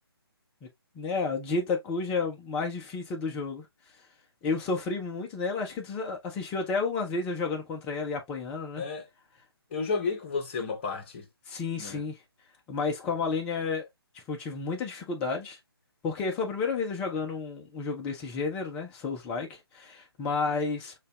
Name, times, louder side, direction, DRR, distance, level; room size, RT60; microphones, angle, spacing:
voice 1, 1.0-3.7 4.4-8.8 11.5-12.2 12.7-13.9 14.1-15.6 16.0-20.9, left 4 dB, 10° left, 0.4 m, -31 dB
voice 2, 9.7-11.3 11.8-12.0, left 4 dB, 25° left, 0.8 m, -32 dB
6.4 x 2.3 x 2.2 m
figure-of-eight pair, 155°, 13 cm